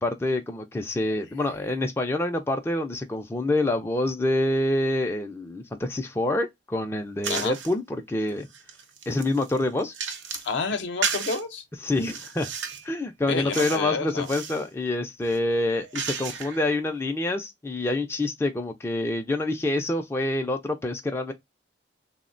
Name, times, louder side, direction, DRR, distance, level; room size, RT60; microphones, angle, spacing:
voice 1, 0.0-8.5 9.1-9.9 11.8-12.5 12.8-21.3, left 2 dB, 15° left, 0.3 m, -27 dB
sound 1, 7.2-7.7 8.3-10.5 11.0-11.4 11.9-12.9 13.5-13.9 14.2-14.6 15.2-16.7, right 7 dB, 75° right, 0.7 m, -33 dB
voice 2, 10.3-11.6 13.3-14.3, left 4 dB, 70° left, 0.6 m, -29 dB
3.5 x 2.0 x 2.4 m
head